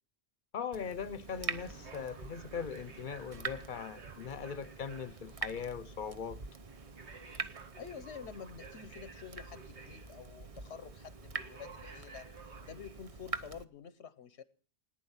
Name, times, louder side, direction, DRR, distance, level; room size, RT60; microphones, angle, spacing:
voice 1, 0.5-6.4, left 6 dB, 50° left, 1.0 m, -40 dB
Water tap faucet / Drip, 0.7-13.6, right 4 dB, 35° right, 0.8 m, -45 dB
sound 1, 1.3-13.2, right 4 dB, 90° right, 1.9 m, -54 dB
voice 2, 7.8-12.3 12.6-14.4, left 7 dB, 85° left, 1.2 m, -48 dB
18.5 x 10.0 x 7.3 m
omnidirectional pair, 1.1 m